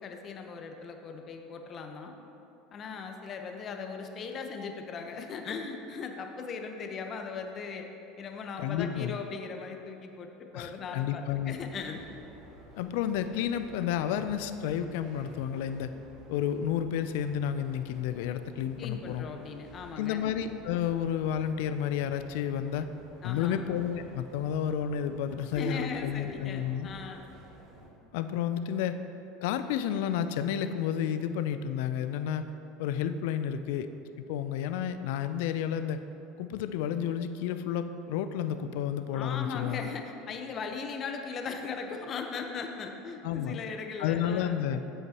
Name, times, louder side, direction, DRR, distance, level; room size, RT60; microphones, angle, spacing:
voice 1, 0.0-2.1 2.7-7.9 8.2-12.0 18.8-20.4 23.2-23.7 25.5-27.2 39.1-44.7, left 5 dB, 40° left, 4 dB, 1.1 m, -38 dB
voice 2, 8.6-9.2 10.5-11.6 12.8-15.9 16.3-19.2 20.0-22.9 23.2-26.9 28.1-29.0 29.4-32.5 32.8-33.9 34.3-36.0 36.4-39.9 43.2-43.6 44.0-44.8, left 9 dB, 65° left, 10 dB, 0.5 m, -31 dB
sound 1, 11.5-27.9, right 2 dB, 55° right, 2.4 m, -53 dB
14.5 x 8.0 x 3.0 m, 2.9 s
hypercardioid pair, 80°, 0 cm